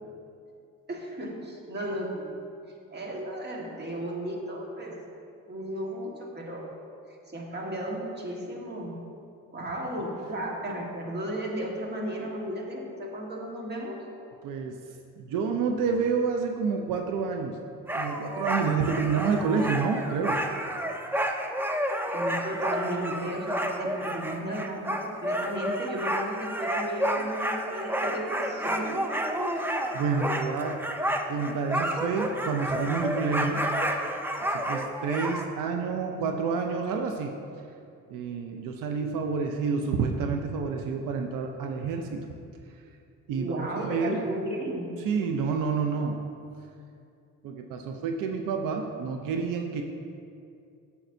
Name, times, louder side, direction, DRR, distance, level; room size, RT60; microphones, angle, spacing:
voice 1, 0.9-2.4 2.9-5.0 5.5-6.8 7.3-8.9 9.5-14.0 22.1-29.0 43.4-44.9, right 1 dB, 30° right, -1 dB, 1.5 m, -34 dB
voice 2, 14.4-14.8 15.2-17.6 17.9-20.4 29.5-30.8 31.3-33.6 34.5-37.3 38.1-42.2 43.3-44.2 45.0-46.2 47.4-49.8, right 5 dB, 85° right, 4 dB, 0.6 m, -29 dB
sound 1, 17.9-35.4, equal, 5° right, 0.5 m, -30 dB
9.1 x 7.2 x 2.6 m, 2.5 s
cardioid pair, 90°, 32 cm